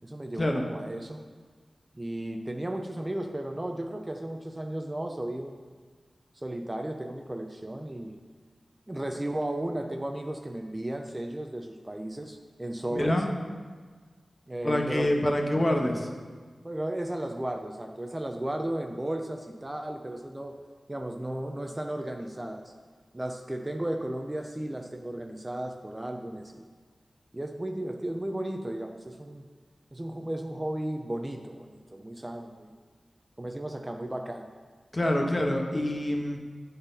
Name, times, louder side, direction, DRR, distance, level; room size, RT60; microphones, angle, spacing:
voice 1, 0.0-1.2 1.9-5.6 6.3-8.2 8.9-13.2 14.5-15.1 16.6-20.6 20.9-22.7 23.1-26.7 27.3-29.4 29.9-32.7 33.4-34.5, right 1 dB, 20° right, 4 dB, 0.4 m, -34 dB
voice 2, 12.9-13.3 14.6-16.1 34.9-36.4, left 1 dB, 30° left, 2 dB, 0.9 m, -26 dB
10.0 x 4.0 x 4.0 m, 1.5 s
wide cardioid pair, 100°, 0 cm